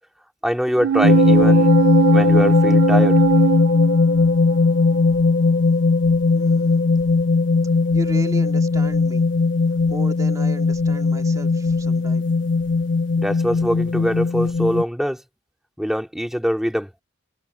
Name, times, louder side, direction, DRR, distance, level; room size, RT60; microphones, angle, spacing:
voice 1, 0.4-1.7 2.1-3.2 13.2-15.2 15.8-16.9, equal, ahead, 3.0 m, -23 dB
sound 1, 0.8-4.6 4.9-5.0, right 8 dB, 80° right, 0.4 m, -21 dB
sound 2, 1.0-14.8, left 4 dB, 70° left, 1.1 m, -18 dB
voice 2, 6.3-6.8 7.9-9.2 9.9-12.3, right 1 dB, 15° right, 2.7 m, -35 dB
head